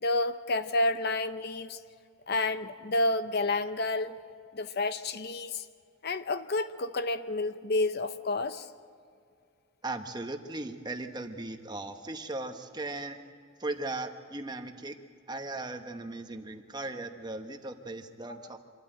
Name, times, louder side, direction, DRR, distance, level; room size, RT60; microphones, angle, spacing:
voice 1, 0.0-1.8 2.3-4.2 4.5-5.6 6.0-8.7, left 2 dB, 55° left, 11 dB, 0.7 m, -30 dB
voice 2, 9.8-13.2 13.6-15.0 15.3-18.6, right 2 dB, 20° right, 6 dB, 1.1 m, -38 dB
26.0 x 13.0 x 8.9 m, 2.3 s
head